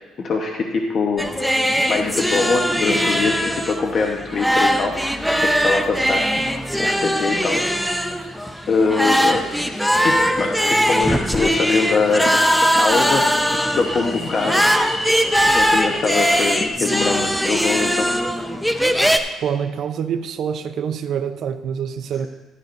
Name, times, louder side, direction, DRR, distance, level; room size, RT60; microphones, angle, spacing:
voice 1, 0.2-1.2 1.9-4.9 5.4-6.3 6.8-7.6 8.1-8.2 8.7-9.5 10.0-13.3 13.6-14.6 15.4-18.1, left 4 dB, 45° left, 1 dB, 1.0 m, -23 dB
sound 1, 1.2-19.2, equal, ahead, 0.6 m, -20 dB
sound 2, 8.5-16.7, left 1 dB, 70° left, 2.5 m, -34 dB
voice 2, 19.4-22.3, right 8 dB, 65° right, 8 dB, 0.6 m, -26 dB
13.0 x 11.0 x 2.6 m, 1.2 s
cardioid pair, 120°, 0 cm